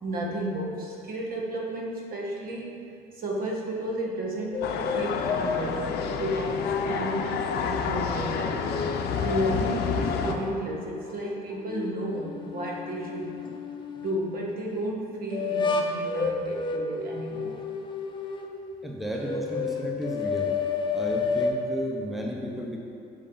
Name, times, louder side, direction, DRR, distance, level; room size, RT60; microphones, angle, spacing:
voice 1, 0.0-2.7 3.1-7.3 7.6-8.6 9.2-13.3 13.9-17.6 21.1-21.2, right 1 dB, 60° right, -2 dB, 1.6 m, -33 dB
sound 1, 4.5-7.8 8.3-10.6 11.1-14.2 15.3-18.6 19.2-21.6, left 4 dB, 30° left, 0.8 m, -31 dB
sound 2, 4.6-10.4, left 6 dB, 75° left, 0.6 m, -29 dB
voice 2, 18.8-20.5 20.9-22.8, equal, ahead, -1 dB, 0.8 m, -33 dB
8.2 x 6.5 x 3.9 m, 2.5 s
cardioid pair, 110°, 17 cm